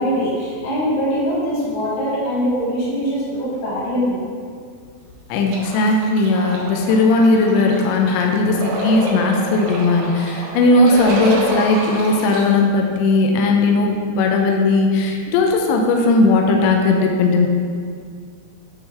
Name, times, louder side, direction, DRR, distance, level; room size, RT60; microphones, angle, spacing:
voice 1, 0.0-4.2, equal, 70° left, -8 dB, 4.0 m, -22 dB
voice 2, 5.3-17.5, left 3 dB, 85° left, 2 dB, 2.6 m, -17 dB
sound 1, 5.5-12.4, right 2 dB, 80° right, 3.5 m, -28 dB
9.6 x 3.3 x 3.7 m, 2.1 s
omnidirectional pair, 5.8 m